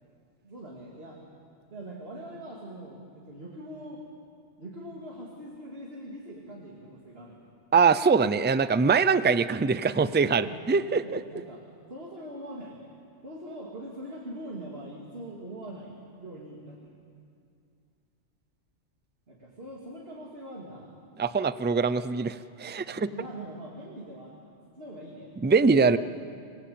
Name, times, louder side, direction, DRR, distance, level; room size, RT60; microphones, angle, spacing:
voice 1, 0.4-1.2 1.7-4.0 4.6-7.4 10.3-10.6 11.0-11.6 11.9-12.8 13.2-17.0 19.3-20.9 22.9-26.0, right 1 dB, 60° right, -2 dB, 3.0 m, -42 dB
voice 2, 7.7-11.2 21.2-23.1 25.4-26.0, right 5 dB, 15° right, 14 dB, 0.3 m, -23 dB
27.0 x 20.0 x 8.7 m, 2.4 s
omnidirectional pair, 1.1 m